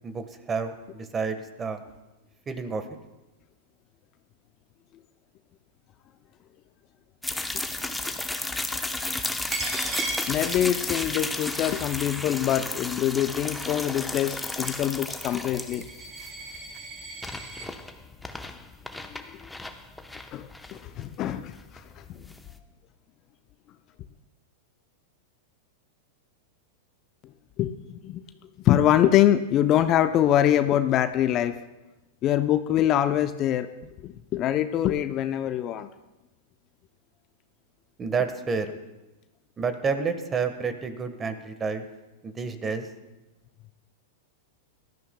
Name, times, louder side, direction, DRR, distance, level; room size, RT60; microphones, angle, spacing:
voice 1, 0.0-1.8 2.5-2.8 38.0-38.7 39.6-41.8 42.2-42.9, right 5 dB, 20° right, 9 dB, 1.3 m, -29 dB
sound 1, 7.2-22.6, left 2 dB, 5° left, 0.8 m, -34 dB
Coin (dropping), 9.5-17.7, right 3 dB, 35° right, 3.1 m, -38 dB
voice 2, 10.3-15.9 19.1-19.5 20.3-22.0 27.6-28.2 28.6-31.6 32.2-33.7 34.0-35.9, left 11 dB, 40° left, 10 dB, 0.5 m, -24 dB
19.0 x 13.0 x 2.2 m, 1.0 s
hypercardioid pair, 110°, 0 cm